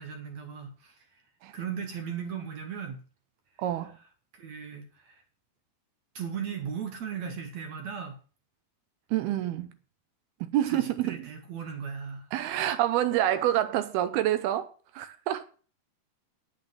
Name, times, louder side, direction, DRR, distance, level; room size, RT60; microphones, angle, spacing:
voice 1, 0.0-1.2 1.5-3.0 4.3-5.2 6.2-8.2 10.7-12.3, right 7 dB, 65° right, 1.8 m, -37 dB
voice 2, 3.6-3.9 9.1-9.7 10.5-11.3 12.3-15.4, right 12 dB, 80° right, 2.6 m, -27 dB
9.1 x 7.7 x 7.5 m
omnidirectional pair, 4.7 m